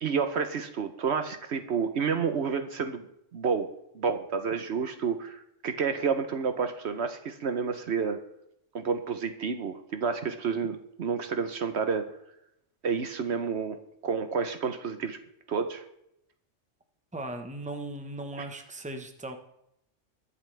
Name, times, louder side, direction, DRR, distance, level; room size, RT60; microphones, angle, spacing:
voice 1, 0.0-3.1 3.3-3.7 3.9-8.2 8.7-12.1 12.8-15.2 15.5-15.8, right 6 dB, 65° right, 8 dB, 1.1 m, -30 dB
voice 2, 17.1-19.4, right 2 dB, 5° right, 6 dB, 1.1 m, -37 dB
22.0 x 7.3 x 3.4 m, 0.77 s
omnidirectional pair, 1.3 m